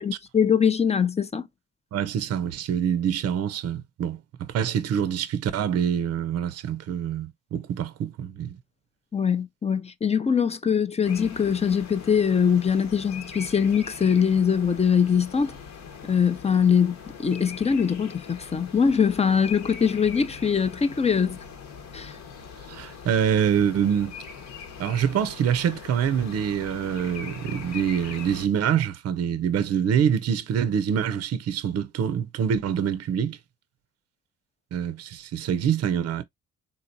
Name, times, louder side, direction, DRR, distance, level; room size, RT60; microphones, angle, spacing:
voice 1, 0.0-1.5 9.1-15.6 16.0-21.4 21.9-22.2, left 7 dB, 20° left, 0.4 m, -22 dB
voice 2, 1.9-8.6 22.7-24.2 24.8-33.4 34.7-36.2, right 8 dB, 55° right, 0.5 m, -25 dB
sound 1, 11.0-28.5, left 6 dB, 65° left, 1.1 m, -41 dB
3.8 x 2.9 x 2.6 m
cardioid pair, 90°, 30 cm